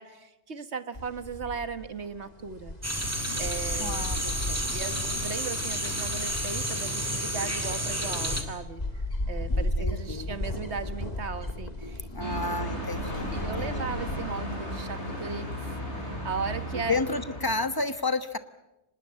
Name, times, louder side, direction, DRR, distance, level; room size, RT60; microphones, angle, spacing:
voice 1, 0.0-4.1 4.7-8.8 9.3-12.5 13.3-16.9, right 5 dB, 75° right, 11 dB, 1.8 m, -37 dB
sound 1, 0.9-14.2, left 1 dB, 35° left, 2.5 m, -36 dB
sound 2, 2.8-8.4, equal, 15° right, 2.4 m, -31 dB
voice 2, 3.8-4.8 9.5-10.4 12.1-13.7 16.7-18.4, left 3 dB, 20° left, 10 dB, 1.2 m, -32 dB
sound 3, 12.2-17.8, equal, 85° left, 7.7 m, -35 dB
25.5 x 20.0 x 8.7 m, 0.92 s
omnidirectional pair, 1.1 m